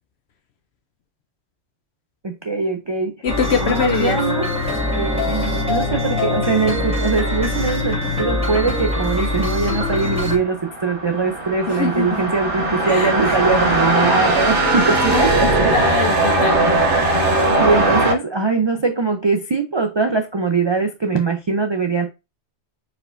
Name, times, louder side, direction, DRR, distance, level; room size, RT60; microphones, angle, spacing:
voice 1, 2.2-3.3 3.6-4.4 5.0-16.1 17.6-22.1, right 4 dB, 35° right, 0.4 m, -22 dB
voice 2, 3.2-4.2 11.7-12.3 12.8-13.3 15.1-16.8, left 6 dB, 70° left, 0.9 m, -24 dB
sound 1, 3.3-10.4, left 2 dB, 5° right, 1.8 m, -23 dB
sound 2, 10.2-18.1, right 2 dB, 80° right, 1.2 m, -19 dB
4.6 x 4.4 x 2.5 m
omnidirectional pair, 1.2 m